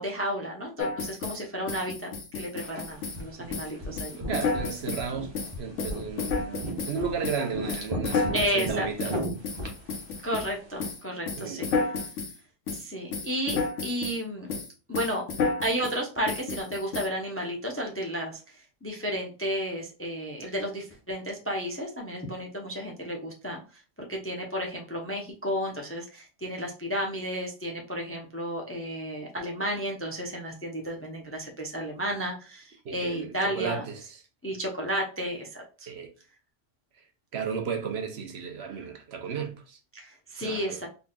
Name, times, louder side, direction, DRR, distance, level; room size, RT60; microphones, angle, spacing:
voice 1, 0.0-4.2 8.3-8.9 10.2-11.7 12.7-14.5 14.9-15.2 15.6-23.8 24.1-33.8 34.4-35.9 39.9-40.9, equal, 15° left, 0.5 m, -32 dB
sound 1, 0.8-1.4 1.7-3.2 3.5-3.7 4.0-5.1 5.3-7.0 7.2-10.5 10.8-11.0 11.3-12.3 12.7-12.8 13.1-14.2 14.5-14.7 14.9-16.0 16.3-17.1, left 4 dB, 85° left, 1.1 m, -31 dB
sound 2, 2.6-10.8, equal, 25° right, 1.0 m, -37 dB
voice 2, 4.2-9.2 11.4-11.6 32.8-34.2 35.9-36.1 37.3-39.8 40.4-40.8, right 6 dB, 65° right, 1.0 m, -34 dB
3.8 x 3.5 x 2.3 m
omnidirectional pair, 1.2 m